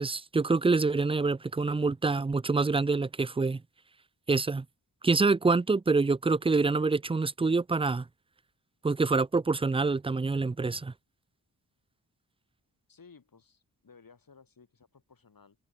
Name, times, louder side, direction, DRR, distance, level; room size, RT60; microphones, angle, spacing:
voice 1, 0.0-3.6 4.3-4.6 5.0-8.0 8.8-10.9, right 3 dB, 15° right, 0.5 m, -26 dB
voice 2, 12.9-15.6, left 5 dB, 55° left, 6.1 m, -57 dB
supercardioid pair, 40°, 41 cm